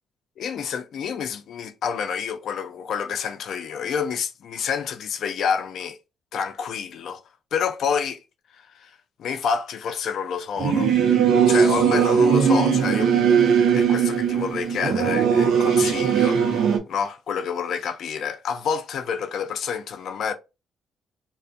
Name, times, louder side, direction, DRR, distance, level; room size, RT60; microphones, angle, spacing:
voice 1, 0.4-6.0 6.3-7.2 7.5-8.2 8.5-8.9 9.2-10.9 11.5-20.3, left 7 dB, 70° left, 0.3 m, -28 dB
Singing / Musical instrument, 10.6-16.8, right 7 dB, 80° right, 0.5 m, -19 dB
2.5 x 2.0 x 2.5 m
cardioid pair, 90°, 0 cm